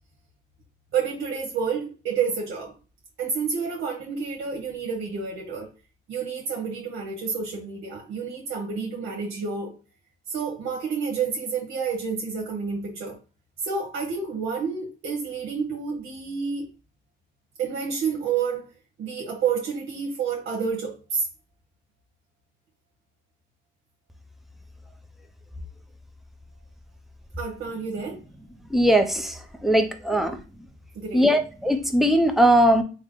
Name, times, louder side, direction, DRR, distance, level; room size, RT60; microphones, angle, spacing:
voice 1, 0.9-2.7 3.2-5.7 6.1-9.7 10.3-13.2 13.6-16.7 17.6-18.7 19.0-21.3 27.4-28.2 30.1-30.2 30.9-31.3, right 6 dB, 80° right, 1.0 m, -29 dB
voice 2, 28.7-29.3 29.6-30.4 31.1-32.8, equal, ahead, 0.6 m, -19 dB
3.4 x 2.1 x 3.6 m
cardioid pair, 90°, 20 cm